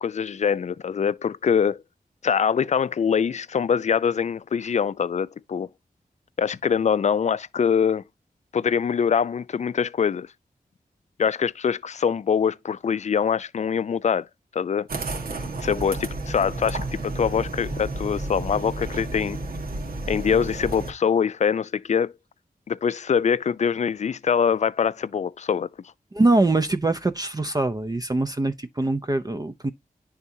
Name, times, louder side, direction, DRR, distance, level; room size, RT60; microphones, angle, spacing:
voice 1, 0.0-1.8 2.2-5.7 6.4-8.0 8.5-10.3 11.2-14.3 14.5-14.9 15.6-19.4 20.1-22.1 22.7-25.7, left 7 dB, 50° left, 0.4 m, -24 dB
sound 1, 14.9-20.9, right 2 dB, 75° right, 1.5 m, -32 dB
voice 2, 26.1-29.7, right 2 dB, 25° right, 0.5 m, -23 dB
10.5 x 3.6 x 2.7 m
wide cardioid pair, 75°, 15 cm